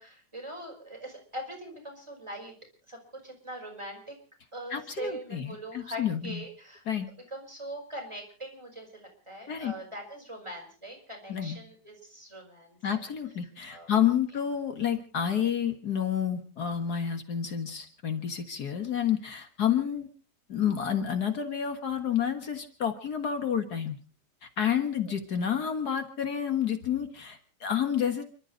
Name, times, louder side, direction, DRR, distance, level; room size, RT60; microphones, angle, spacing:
voice 1, 0.0-2.5 2.9-4.2 4.5-6.8 7.3-13.0 13.7-13.9 25.0-25.1, right 1 dB, 15° right, 0 dB, 5.4 m, -42 dB
voice 2, 4.7-6.4 6.9-7.1 9.5-9.7 11.3-11.6 12.8-20.1 20.5-24.0 24.4-28.2, left 8 dB, 65° left, 7 dB, 2.1 m, -29 dB
30.0 x 12.5 x 3.9 m, 0.38 s
omnidirectional pair, 1.8 m